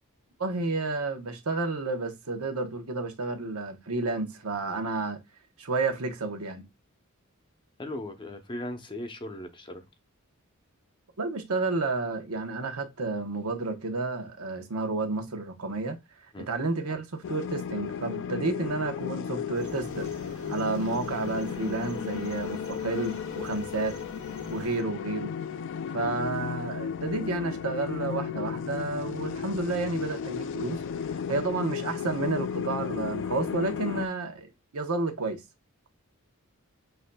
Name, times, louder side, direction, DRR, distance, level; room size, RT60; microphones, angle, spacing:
voice 1, 0.4-5.2 5.6-6.7 11.2-16.0 16.5-20.1 20.5-24.0 24.5-25.3 25.9-30.8 31.3-34.5 34.7-35.4, right 3 dB, 85° right, 0.9 m, -31 dB
voice 2, 7.8-9.8 16.3-16.5, left 1 dB, 20° left, 0.7 m, -37 dB
sound 1, 17.2-34.1, left 7 dB, 60° left, 0.3 m, -34 dB
sound 2, 19.5-24.8, right 2 dB, 35° right, 0.9 m, -48 dB
7.8 x 2.6 x 2.2 m
head